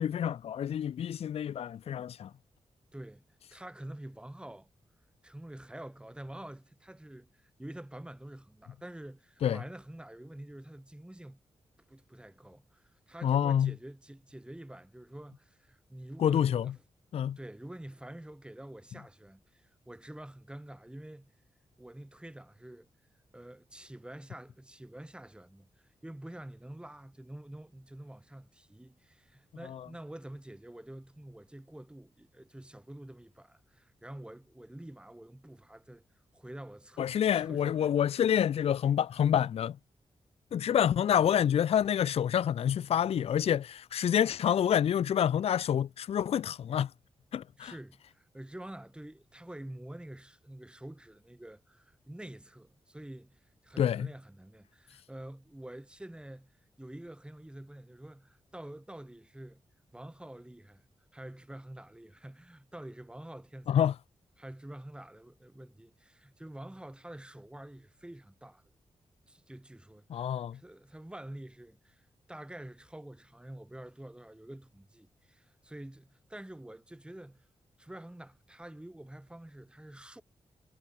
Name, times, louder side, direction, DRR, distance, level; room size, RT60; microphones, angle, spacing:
voice 1, 0.0-2.3 9.4-9.6 13.2-13.7 16.2-16.7 17.1-17.4 29.7-29.8 37.0-39.8 40.5-46.9 47.3-47.7 53.8-54.1 63.7-63.9 70.1-70.6, left 9 dB, 70° left, 0.4 m, -27 dB
voice 2, 2.9-3.2 3.5-4.7 5.2-11.4 11.9-16.8 17.4-21.3 21.8-22.9 23.3-25.7 26.0-36.0 36.3-38.0 47.6-59.6 59.9-60.8 61.1-63.8 64.4-68.6 69.3-77.4 77.8-80.2, right 1 dB, 10° right, 2.9 m, -47 dB
wide cardioid pair, 95°, 11 cm